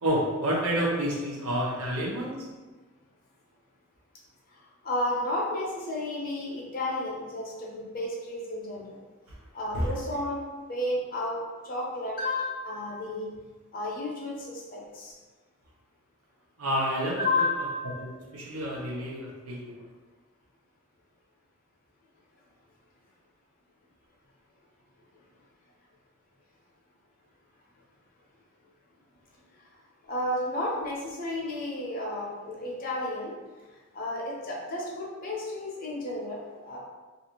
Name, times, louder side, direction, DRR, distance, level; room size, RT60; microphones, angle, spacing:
voice 1, 0.0-2.3 9.7-9.9 16.6-17.3 18.0-19.7, equal, 90° right, -3 dB, 0.7 m, -29 dB
voice 2, 4.8-9.0 9.5-10.4 10.7-13.3 13.7-15.1 17.2-18.0 30.1-33.4 33.9-36.8, left 1 dB, 40° left, -3 dB, 0.6 m, -32 dB
2.5 x 2.4 x 2.8 m, 1.3 s
head